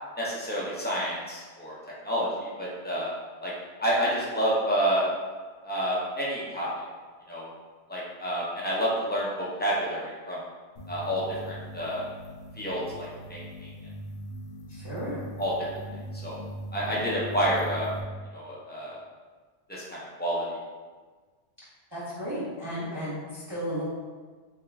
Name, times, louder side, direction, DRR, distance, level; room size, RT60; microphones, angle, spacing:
voice 1, 0.2-1.8 2.0-3.1 3.4-3.5 3.8-5.0 5.6-6.7 7.3-7.5 7.9-10.4 10.9-11.2 11.5-12.0 12.6-13.7 15.4-15.5 16.2-16.4 16.7-17.9 18.3-19.0 19.7-20.4, equal, 10° left, -6 dB, 0.5 m, -29 dB
sound 1, 10.8-18.0, right 1 dB, 70° left, 0.9 m, -40 dB
voice 2, 14.7-15.2 21.9-23.8, equal, 25° right, -10 dB, 0.7 m, -34 dB
3.7 x 3.4 x 2.3 m, 1.4 s
omnidirectional pair, 1.3 m